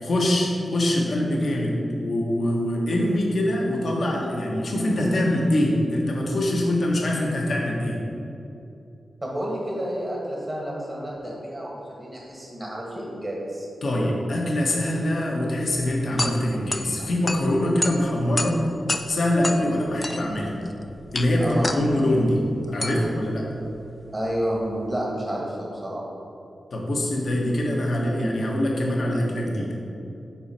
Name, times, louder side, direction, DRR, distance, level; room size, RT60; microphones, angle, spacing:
voice 1, 0.0-8.0 13.8-18.6 19.1-20.5 21.1-22.4 22.7-23.4 26.7-29.8, left 1 dB, 65° left, -2 dB, 1.2 m, -24 dB
voice 2, 9.2-13.7 17.0-17.1 21.4-21.7 22.8-23.1 24.1-26.0, right 1 dB, 30° right, -4 dB, 1.5 m, -30 dB
sound 1, 15.7-24.8, left 2 dB, 30° left, 0.4 m, -32 dB
5.9 x 4.8 x 4.3 m, 2.9 s
cardioid pair, 50°, 0 cm